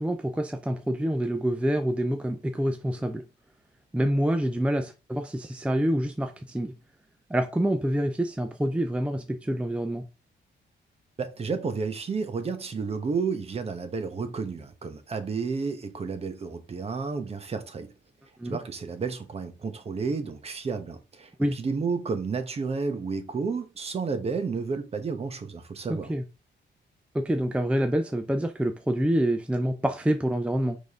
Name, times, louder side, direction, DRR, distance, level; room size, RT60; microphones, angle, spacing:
voice 1, 0.0-3.2 3.9-6.7 7.3-10.0 18.4-18.6 21.4-21.6 26.1-26.2 27.1-30.8, right 1 dB, 5° right, 0.5 m, -27 dB
voice 2, 11.2-17.9 18.4-26.1, right 4 dB, 30° right, 1.1 m, -31 dB
6.3 x 5.2 x 3.6 m
wide cardioid pair, 160°, 19 cm